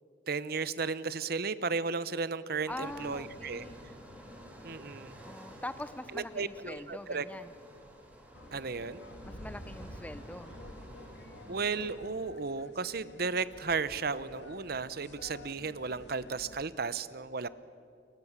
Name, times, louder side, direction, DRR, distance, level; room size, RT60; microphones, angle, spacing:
voice 1, 0.3-3.6 4.6-5.2 6.1-7.3 8.5-9.0 11.5-17.5, right 4 dB, 55° right, 16 dB, 0.9 m, -34 dB
voice 2, 2.7-3.8 5.3-7.5 9.2-10.5, left 1 dB, 10° left, 13 dB, 0.9 m, -43 dB
sound 1, 2.7-12.0, equal, 10° right, 4.6 m, -51 dB
sound 2, 8.3-16.7, left 1 dB, 70° left, 2.1 m, -51 dB
29.5 x 23.5 x 7.4 m, 2.6 s
head